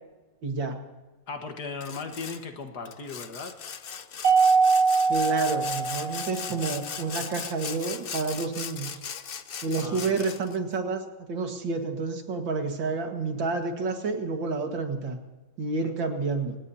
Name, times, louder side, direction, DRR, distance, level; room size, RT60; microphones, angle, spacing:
voice 1, 0.4-0.8 5.1-9.0 9.6-11.0 11.3-15.2 15.6-16.6, right 4 dB, 85° right, 5 dB, 2.5 m, -29 dB
voice 2, 1.3-3.5 9.8-10.3, left 4 dB, 60° left, 5 dB, 2.0 m, -37 dB
Sawing, 1.8-2.4 2.9-10.6, left 7 dB, 90° left, 0.5 m, -38 dB
Mallet percussion, 4.2-6.7, right 4 dB, 45° right, 1.5 m, -22 dB
27.5 x 17.0 x 2.8 m, 1.2 s
omnidirectional pair, 2.0 m